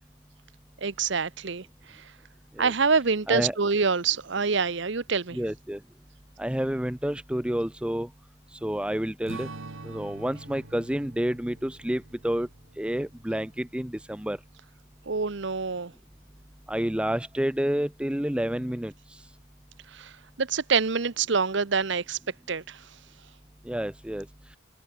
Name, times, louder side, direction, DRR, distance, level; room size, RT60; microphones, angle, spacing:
voice 1, 0.8-2.1 2.6-5.4 15.1-15.9 19.9-20.1 20.4-22.2 22.5-22.9, right 5 dB, 60° right, 0.8 m, -26 dB
voice 2, 5.3-5.8 6.4-8.1 8.6-9.5 9.8-12.5 12.8-14.4 16.7-18.9 23.7-24.3, equal, 5° right, 0.5 m, -29 dB
Strum, 9.3-13.9, right 3 dB, 80° right, 1.4 m, -45 dB
head